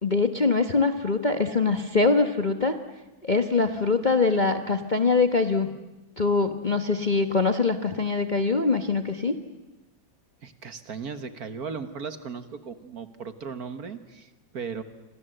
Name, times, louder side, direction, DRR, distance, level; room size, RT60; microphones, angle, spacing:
voice 1, 0.0-2.8 3.2-5.7 6.2-9.3, left 4 dB, 30° left, 7 dB, 1.1 m, -23 dB
voice 2, 10.4-14.8, right 5 dB, 50° right, 10 dB, 1.8 m, -37 dB
29.5 x 25.5 x 7.9 m, 1.0 s
omnidirectional pair, 2.1 m